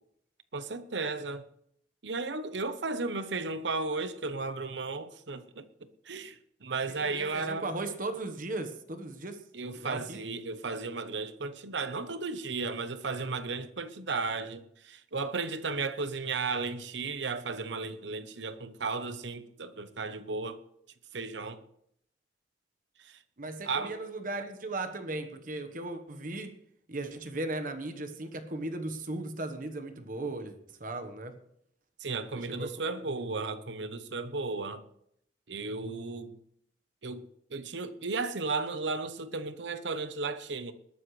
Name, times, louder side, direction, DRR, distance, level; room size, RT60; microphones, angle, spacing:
voice 1, 0.5-1.5 2.0-5.7 6.0-7.7 9.5-20.6 21.1-21.6 23.0-23.2 23.6-23.9 32.0-34.8 35.5-36.4 37.0-37.2 37.5-40.7, right 4 dB, 85° right, 1.0 m, -34 dB
voice 2, 7.0-9.4 9.7-10.2 23.4-26.5 26.9-31.4 32.3-32.9, right 2 dB, 50° right, 1.3 m, -37 dB
20.5 x 12.5 x 3.3 m
head